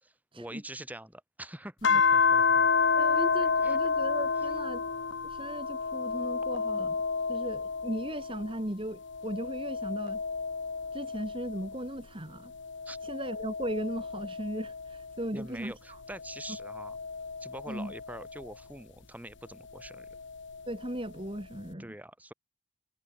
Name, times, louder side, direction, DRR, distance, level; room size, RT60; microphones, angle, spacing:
voice 1, 0.0-2.7 3.6-3.8 12.8-13.0 15.3-17.0 17.4-20.1 21.8-22.3, right 1 dB, 10° right, 4.6 m, -45 dB
sound 1, 1.8-8.6 9.0-11.9 12.5-15.3 16.0-18.5 19.8-20.9, left 5 dB, 60° left, 0.9 m, -30 dB
voice 2, 3.0-4.8 5.2-7.0 7.3-10.2 10.9-12.5 13.0-16.0 17.7-17.9 20.7-21.9, right 1 dB, 25° right, 2.9 m, -37 dB
head